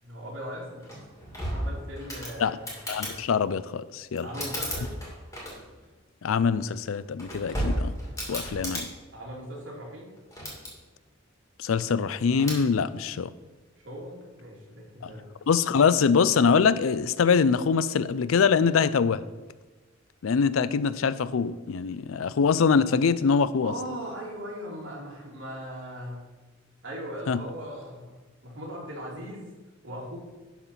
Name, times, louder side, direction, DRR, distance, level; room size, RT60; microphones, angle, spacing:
voice 1, 0.0-0.8 1.5-2.6 4.2-4.9 9.1-10.1 13.8-15.3 23.6-26.2 26.8-29.5 29.8-30.2, equal, 65° right, -3 dB, 2.7 m, -39 dB
sound 1, 0.8-3.2 4.1-5.8 6.9-8.9 10.2-10.7 12.3-12.6, equal, 15° left, 2.4 m, -33 dB
voice 2, 2.9-4.3 6.2-7.9 8.3-8.9 11.6-13.3 15.5-19.2 20.2-23.7 27.3-27.4, left 5 dB, 90° left, 16 dB, 0.4 m, -23 dB
11.5 x 4.2 x 5.7 m, 1.2 s
head